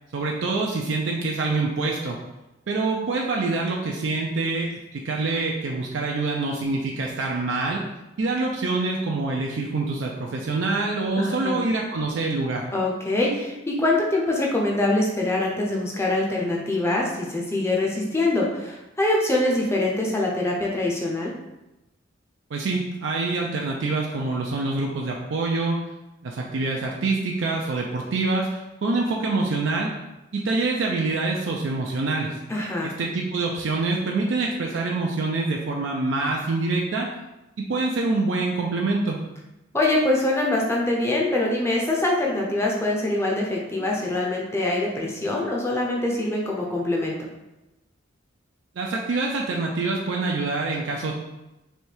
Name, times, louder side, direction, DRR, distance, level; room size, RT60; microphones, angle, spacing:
voice 1, 0.1-2.2 2.7-7.8 8.2-12.7 22.5-25.8 26.2-29.9 30.3-32.4 32.8-37.1 37.7-39.2 48.8-51.1, right 3 dB, 65° right, -1 dB, 0.4 m, -25 dB
voice 2, 11.2-11.6 12.7-21.3 32.5-32.9 39.7-47.2, left 2 dB, 15° left, -2 dB, 0.6 m, -24 dB
3.3 x 2.7 x 4.4 m, 0.99 s
head